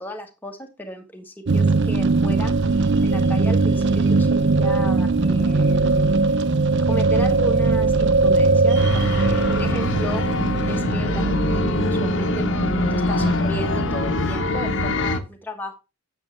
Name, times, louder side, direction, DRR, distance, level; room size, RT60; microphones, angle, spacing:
voice 1, 0.0-2.5 3.0-6.2 6.8-10.3 10.7-15.7, right 1 dB, 10° left, 3 dB, 1.3 m, -34 dB
sound 1, 1.5-14.9, right 3 dB, 55° right, 0.6 m, -20 dB
sound 2, 8.7-15.2, left 2 dB, 55° left, 1.0 m, -24 dB
8.9 x 7.1 x 3.3 m, 0.28 s
head